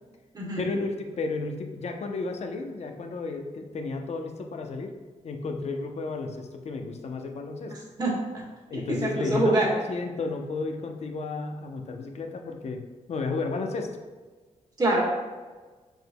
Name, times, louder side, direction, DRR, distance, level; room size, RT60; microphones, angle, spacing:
voice 1, 0.6-4.9 5.2-7.8 8.7-12.8 13.1-14.0, left 3 dB, 55° left, 4 dB, 0.7 m, -32 dB
voice 2, 8.0-8.4 8.7-9.7 14.8-15.0, right 2 dB, 30° right, -4 dB, 1.5 m, -25 dB
6.8 x 6.2 x 2.2 m, 1.4 s
wide cardioid pair, 145°, 13 cm